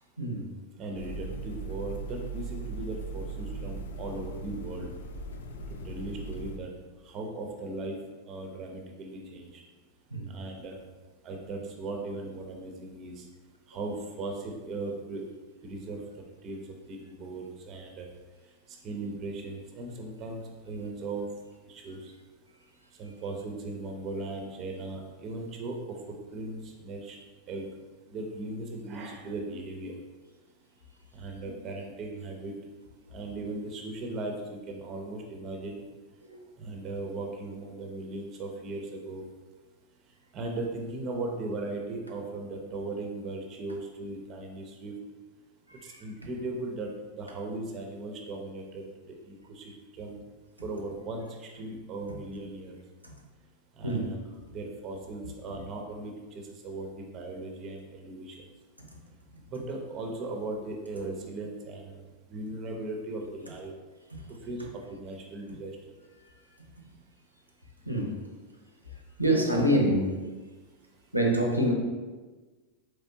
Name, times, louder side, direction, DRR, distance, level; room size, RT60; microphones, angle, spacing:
voice 1, 0.8-4.9 5.8-6.7 7.1-8.0 8.3-9.5 10.3-10.8 11.2-13.2 13.7-15.2 15.6-16.0 16.4-16.6 16.9-18.1 18.8-21.3 21.7-22.1 23.0-25.8 26.1-27.2 27.5-27.7 28.1-30.0 31.1-32.5 33.1-35.8 36.6-39.2 40.3-44.9 46.0-48.8 49.3-49.6 49.9-50.2 50.6-52.8 53.8-54.2 54.5-58.4 59.5-62.0 62.3-63.7 64.4-65.7, right 2 dB, 30° right, 2 dB, 0.6 m, -38 dB
sound 1, 0.9-6.6, right 3 dB, 60° left, 0.3 m, -38 dB
voice 2, 69.2-70.1 71.1-71.7, right 1 dB, 90° right, 0 dB, 0.6 m, -25 dB
4.2 x 3.2 x 2.7 m, 1.3 s
figure-of-eight pair, 90°, 0 cm